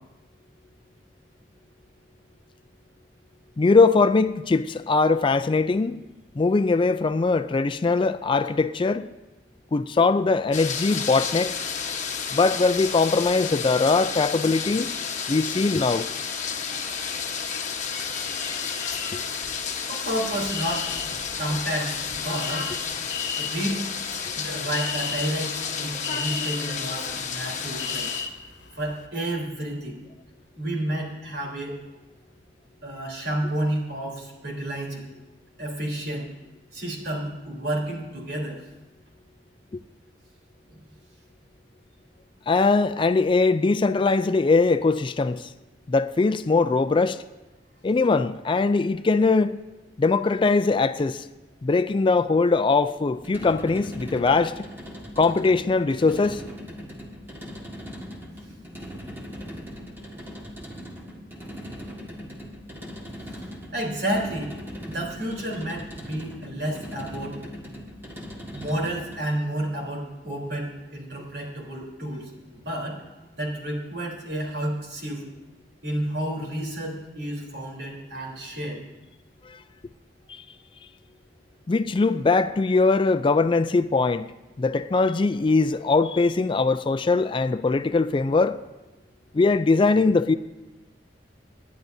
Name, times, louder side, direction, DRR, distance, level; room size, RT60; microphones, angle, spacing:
voice 1, 3.6-6.0 6.4-9.1 9.7-11.5 12.3-14.9 15.3-16.1 19.1-19.2 42.5-45.5 45.9-47.2 47.8-49.6 50.0-51.2 51.6-54.5 55.2-56.4 79.5-79.6 81.7-84.3 84.6-88.6 89.3-90.3, left 3 dB, 30° left, 0.3 m, -21 dB
sound 1, 10.5-28.3, left 6 dB, 45° left, 1.2 m, -31 dB
sound 2, 18.6-19.1 19.4-29.1, left 6 dB, 80° left, 1.0 m, -36 dB
voice 2, 19.9-20.9 21.4-22.7 23.4-23.8 24.4-28.1 28.8-30.0 30.6-31.8 32.8-35.1 35.6-36.3 36.7-38.6 40.7-40.9 63.3-64.5 64.9-67.4 68.5-73.0 73.4-75.3 75.8-78.8, right 1 dB, 65° right, 3.6 m, -30 dB
sound 3, 53.1-69.3, equal, 10° right, 1.7 m, -40 dB
27.5 x 10.5 x 2.7 m
head